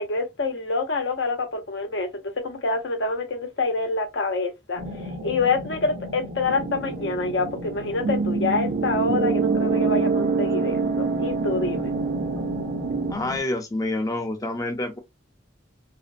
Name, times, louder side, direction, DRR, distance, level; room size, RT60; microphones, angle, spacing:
voice 1, 0.0-11.9, left 3 dB, 70° left, 0.7 m, -27 dB
sound 1, 4.8-13.4, left 1 dB, 70° right, 0.9 m, -36 dB
sound 2, 6.5-13.1, right 4 dB, 50° right, 0.3 m, -26 dB
voice 2, 13.1-15.0, left 2 dB, 20° left, 0.5 m, -27 dB
2.7 x 2.1 x 2.5 m
head